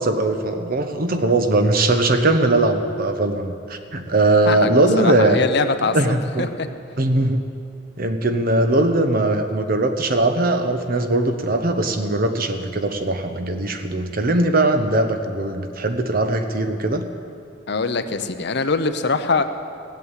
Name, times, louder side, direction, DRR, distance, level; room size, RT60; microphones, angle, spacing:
voice 1, 0.0-5.4 5.8-6.5 7.0-7.4 8.0-17.1, right 2 dB, 50° right, 7 dB, 1.0 m, -20 dB
voice 2, 4.5-6.7 17.7-19.4, left 4 dB, 60° left, 9 dB, 0.8 m, -23 dB
17.0 x 8.3 x 8.2 m, 2.5 s
head